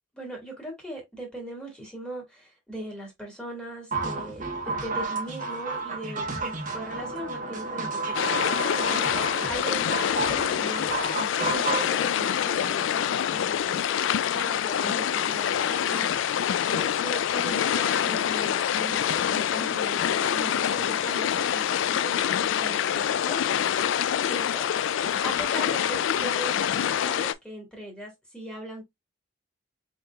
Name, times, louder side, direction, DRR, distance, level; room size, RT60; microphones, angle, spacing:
voice 1, 0.1-10.0 10.3-23.6 24.2-24.7 25.0-28.8, right 1 dB, 5° left, 1.9 m, -39 dB
sound 1, 3.9-11.9, right 3 dB, 45° right, 1.1 m, -32 dB
sound 2, 8.1-27.3, left 9 dB, 75° left, 0.3 m, -26 dB
4.3 x 3.9 x 2.3 m
head